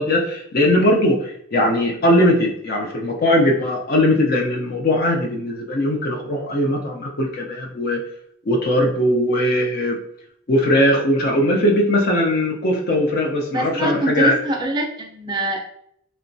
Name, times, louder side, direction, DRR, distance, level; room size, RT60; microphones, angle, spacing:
voice 1, 0.0-8.0 8.5-10.0 10.5-14.4, left 1 dB, 45° left, 0 dB, 0.4 m, -19 dB
voice 2, 13.5-15.6, right 1 dB, 20° right, 2 dB, 0.3 m, -24 dB
2.9 x 2.1 x 2.5 m, 0.70 s
head